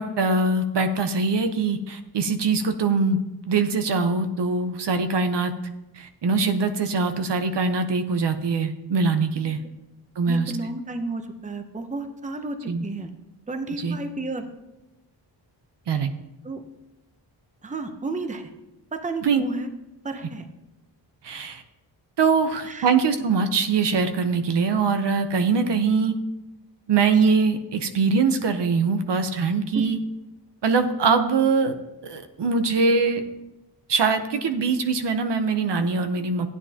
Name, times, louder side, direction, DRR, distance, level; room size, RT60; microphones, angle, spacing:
voice 1, 0.0-5.5 5.9-9.6 10.2-10.5 12.7-12.8 13.8-14.0 15.9-16.1 19.2-19.4 21.2-21.6 22.2-26.1 26.9-30.0 30.6-31.7 32.0-33.2 33.9-36.5, right 4 dB, 70° right, 8 dB, 0.9 m, -22 dB
voice 2, 10.3-13.1 13.5-14.5 16.4-16.6 17.6-18.5 18.9-19.7 20.0-20.4 22.6-22.9 29.7-29.9, right 2 dB, 15° right, 6 dB, 0.8 m, -32 dB
13.5 x 9.6 x 2.9 m, 0.98 s
wide cardioid pair, 130°, 44 cm